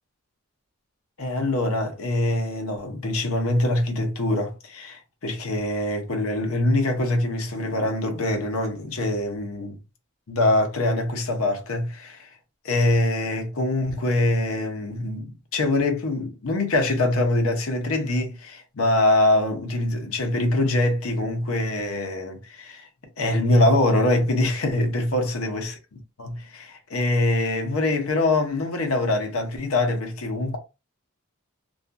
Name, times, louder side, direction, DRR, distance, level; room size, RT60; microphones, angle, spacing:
voice 1, 1.2-9.8 10.3-12.3 12.6-22.9 23.2-25.7 26.2-30.6, left 1 dB, 75° left, 0.8 m, -24 dB
2.6 x 2.4 x 2.2 m
head